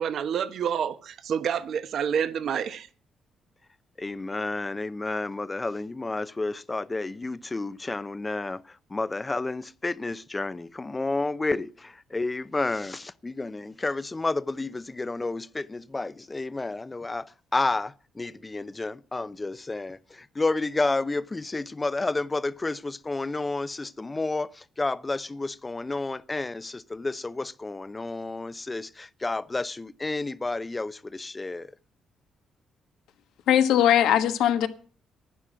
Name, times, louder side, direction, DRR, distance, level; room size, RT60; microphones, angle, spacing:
voice 1, 0.0-2.9, right 8 dB, 65° right, 1.1 m, -28 dB
voice 2, 4.0-8.6 8.9-17.3 17.5-20.0 20.4-24.5 24.8-31.7, left 3 dB, 20° left, 0.7 m, -30 dB
voice 3, 33.5-34.7, left 10 dB, 85° left, 1.3 m, -20 dB
11.5 x 9.8 x 7.4 m
cardioid pair, 90°, 0 cm